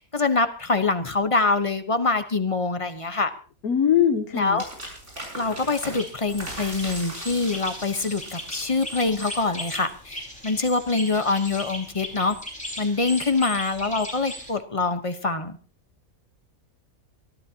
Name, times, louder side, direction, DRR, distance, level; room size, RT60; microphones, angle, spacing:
voice 1, 0.0-3.3 4.3-4.6 5.3-12.4 12.8-15.6, left 3 dB, 25° left, 9 dB, 1.0 m, -25 dB
voice 2, 3.6-4.6, left 9 dB, 85° left, 6 dB, 1.4 m, -21 dB
sound 1, 4.6-10.1, right 1 dB, 55° right, 6.9 m, -39 dB
sound 2, 5.9-14.5, left 1 dB, 5° left, 5.0 m, -37 dB
23.5 x 14.0 x 2.9 m, 0.38 s
omnidirectional pair, 1.5 m